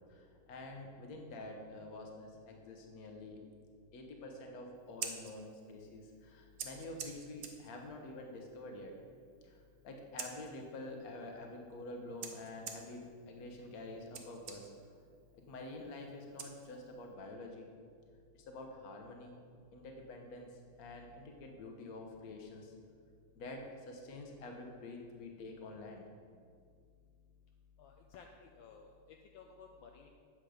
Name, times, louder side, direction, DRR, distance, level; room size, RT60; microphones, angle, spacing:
voice 1, 0.0-3.4 3.9-9.0 9.4-14.7 15.3-17.7 18.3-19.4 19.7-22.7 23.3-26.0, left 2 dB, 50° left, 2 dB, 1.4 m, -48 dB
Scissors, 4.8-17.1, right 6 dB, 65° right, 0.7 m, -51 dB
voice 2, 27.8-29.0 29.3-30.1, left 5 dB, 75° left, 3 dB, 1.3 m, -55 dB
9.1 x 7.5 x 5.0 m, 2.2 s
omnidirectional pair, 2.4 m